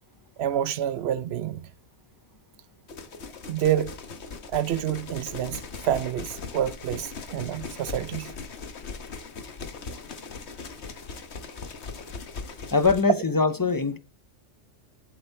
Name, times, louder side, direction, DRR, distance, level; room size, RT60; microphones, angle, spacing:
voice 1, 0.4-1.7 3.5-4.0 4.5-8.3, right 11 dB, 65° right, 0.8 m, -28 dB
sound 1, 2.9-13.0, left 4 dB, 65° left, 1.4 m, -39 dB
voice 2, 12.7-14.0, left 4 dB, 30° left, 0.4 m, -22 dB
8.0 x 7.8 x 4.4 m
omnidirectional pair, 1.2 m